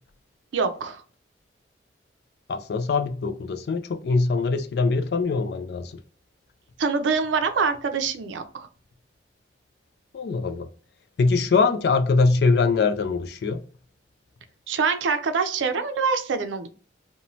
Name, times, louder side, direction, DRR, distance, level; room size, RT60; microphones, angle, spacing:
voice 1, 0.5-1.0 6.8-8.7 14.7-16.7, right 5 dB, 85° right, 0.4 m, -25 dB
voice 2, 2.5-6.0 10.1-10.7 11.2-13.6, left 4 dB, 60° left, 0.3 m, -23 dB
3.0 x 2.2 x 2.6 m
head